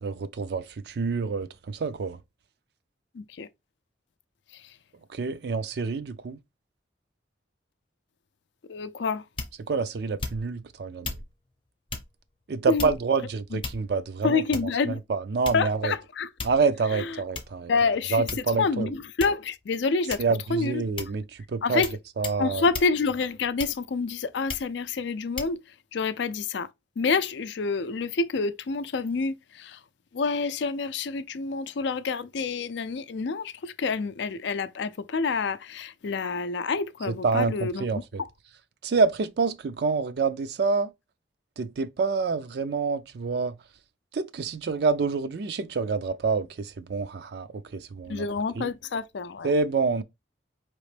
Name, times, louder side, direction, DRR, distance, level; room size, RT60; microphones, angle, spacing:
voice 1, 0.0-2.2 5.1-6.4 9.7-11.2 12.5-14.4 14.9-15.9 16.4-17.7 18.1-18.9 20.2-21.8 22.2-22.6 37.1-38.2 38.8-40.9 41.6-43.5 44.1-47.5 47.7-48.3 48.6-48.7 49.4-50.0, right 4 dB, 55° right, 0.4 m, -27 dB
voice 2, 3.1-3.5 8.7-9.2 12.7-12.9 14.2-15.0 15.5-16.3 16.9-17.1 17.7-18.3 18.6-20.2 20.5-20.9 21.6-21.9 22.4-25.6 25.9-26.7 27.0-29.8 30.1-38.0 48.1-49.5, left 4 dB, 65° left, 0.4 m, -28 dB
sound 1, 9.4-9.7 10.2-10.6 11.0-11.3 11.9-12.1 12.8-13.2 13.6-14.1 14.5-14.8 15.5-15.8 16.4-16.7 17.4-17.5 18.3-18.7 19.2-19.5 20.1-20.4 21.0-21.2 21.8-22.0 22.2-22.4 22.7-22.9 23.6-24.0 24.5-24.7 25.4-25.5, left 4 dB, 25° left, 0.7 m, -35 dB
4.9 x 3.0 x 3.2 m
head